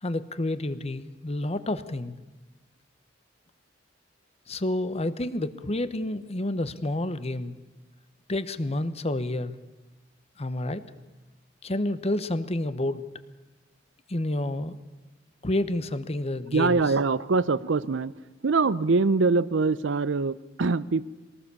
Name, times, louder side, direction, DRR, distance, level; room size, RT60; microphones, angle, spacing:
voice 1, 0.0-2.2 4.5-7.5 8.3-9.6 10.4-10.8 11.6-13.0 14.1-14.8 15.4-16.8, left 1 dB, 35° left, 13 dB, 1.0 m, -29 dB
voice 2, 16.5-18.1 18.4-21.1, right 4 dB, 75° right, 18 dB, 0.6 m, -23 dB
22.5 x 18.5 x 7.0 m, 1.1 s
head